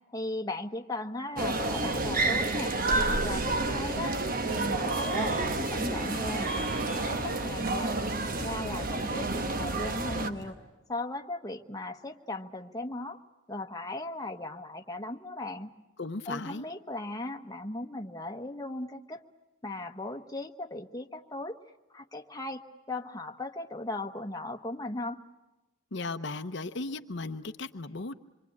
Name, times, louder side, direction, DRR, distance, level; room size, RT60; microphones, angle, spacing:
voice 1, 0.1-2.8 3.0-4.2 4.4-6.5 7.1-10.6 10.9-13.2 13.5-15.7 16.3-19.2 19.6-21.6 21.9-25.2, left 2 dB, 20° left, 4 dB, 1.2 m, -37 dB
sound 1, 1.4-10.3, right 2 dB, 45° right, 1.3 m, -30 dB
Subway metro underground, 4.5-10.5, right 2 dB, 70° right, 5.6 m, -42 dB
voice 2, 16.0-16.7 25.9-28.1, left 3 dB, 60° left, 9 dB, 0.8 m, -36 dB
27.0 x 24.0 x 8.6 m, 1.1 s
head